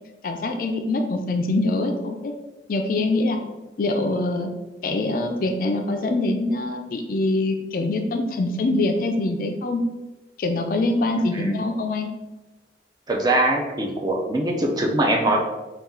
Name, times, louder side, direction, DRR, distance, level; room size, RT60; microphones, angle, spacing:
voice 1, 0.2-2.3 2.7-3.4 3.8-4.5 4.8-9.8 10.4-12.1, left 2 dB, 50° left, 5 dB, 0.4 m, -24 dB
voice 2, 11.2-11.6 13.1-15.4, right 1 dB, 20° right, 1 dB, 0.5 m, -22 dB
4.2 x 2.3 x 3.6 m, 1.1 s
head